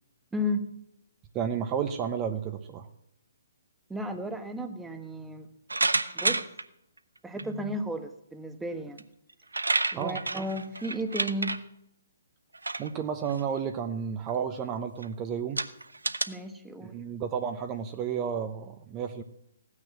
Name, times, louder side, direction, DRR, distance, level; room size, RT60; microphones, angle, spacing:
voice 1, 0.3-0.7 3.9-5.5 6.1-6.4 7.2-9.1 9.9-11.6 16.3-16.9, equal, 5° right, 7 dB, 1.3 m, -34 dB
voice 2, 1.3-2.9 9.9-10.2 12.8-15.6 16.8-19.2, right 7 dB, 25° right, 6 dB, 1.0 m, -32 dB
sound 1, 5.7-6.6 7.4-7.5 9.0-9.1 9.3-11.6 12.5-12.9 13.3-13.6 14.3-14.4 15.0-15.1 15.6-16.2, right 2 dB, 80° right, 1.0 m, -29 dB
16.5 x 9.6 x 7.5 m, 0.79 s
figure-of-eight pair, 130°, 0 cm